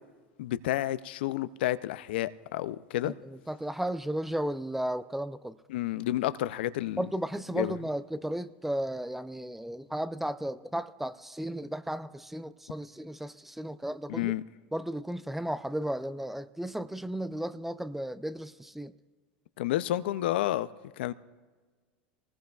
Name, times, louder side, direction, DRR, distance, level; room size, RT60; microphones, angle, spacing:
voice 1, 0.4-3.1 5.7-7.1 7.5-7.8 14.1-14.4 19.6-20.7 21.0-21.1, left 14 dB, 75° left, 15 dB, 0.4 m, -30 dB
voice 2, 3.0-5.6 7.0-14.3 14.7-18.9, right 1 dB, 5° right, 15 dB, 0.4 m, -34 dB
24.0 x 19.5 x 2.3 m, 1.4 s
hypercardioid pair, 105°, 6 cm